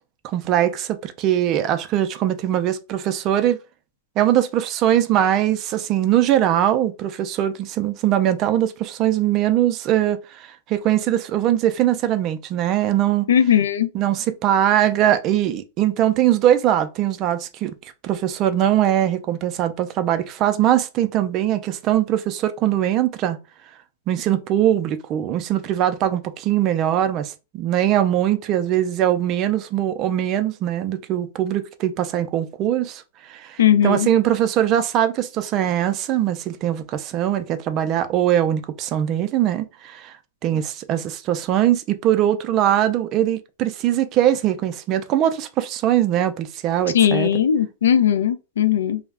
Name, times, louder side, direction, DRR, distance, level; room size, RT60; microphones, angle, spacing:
voice 1, 0.3-3.6 4.2-13.3 13.9-17.7 18.0-23.4 24.1-40.1 40.4-47.3, right 11 dB, 35° right, 0.4 m, -21 dB
voice 2, 13.3-13.9 33.6-34.1 46.9-49.0, left 9 dB, 85° left, 0.3 m, -18 dB
2.3 x 2.0 x 3.4 m
hypercardioid pair, 135°, 0 cm